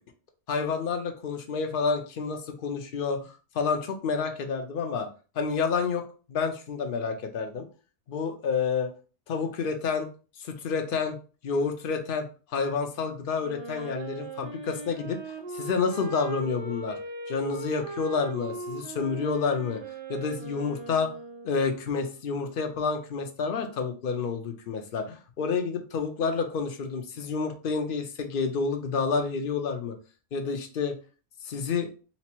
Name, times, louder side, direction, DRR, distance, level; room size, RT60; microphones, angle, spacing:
voice 1, 0.5-5.1 5.3-7.7 8.1-8.9 9.3-10.1 10.4-11.1 11.4-15.2 15.5-17.0 17.3-19.8 20.1-21.1 21.4-30.0 30.3-30.9 31.4-31.9, left 5 dB, 55° left, 5 dB, 0.8 m, -29 dB
Wind instrument woodwind instrument, 13.4-21.8, right 3 dB, 30° right, 0.6 m, -39 dB
4.1 x 2.0 x 4.4 m, 0.36 s
omnidirectional pair, 1.2 m